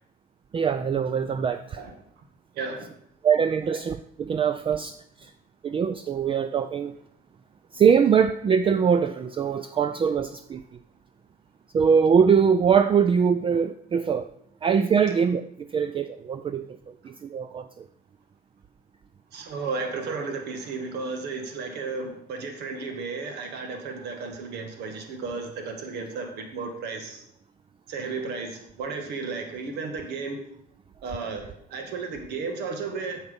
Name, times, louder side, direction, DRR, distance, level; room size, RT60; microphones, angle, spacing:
voice 1, 0.5-1.8 3.2-4.9 5.6-6.9 7.7-10.6 11.7-14.3 14.6-16.8 17.0-17.8, right 7 dB, 30° right, 10 dB, 0.4 m, -22 dB
voice 2, 2.5-2.9 3.7-3.8 19.3-27.2 27.9-30.4 31.0-33.2, right 4 dB, 80° right, 5 dB, 1.9 m, -33 dB
8.1 x 7.2 x 5.2 m, 0.71 s
cardioid pair, 110°, 17 cm